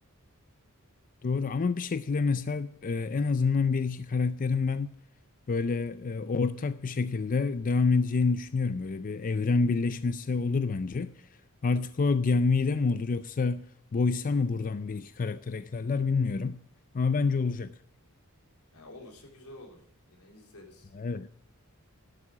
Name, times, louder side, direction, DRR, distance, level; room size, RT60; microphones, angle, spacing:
voice 1, 1.2-5.0 5.5-11.3 11.6-13.6 13.9-16.6 16.9-17.7 20.9-21.3, left 4 dB, 40° left, 0.4 m, -27 dB
voice 2, 18.7-20.9, left 1 dB, 90° left, 3.6 m, -50 dB
12.0 x 8.4 x 7.5 m
head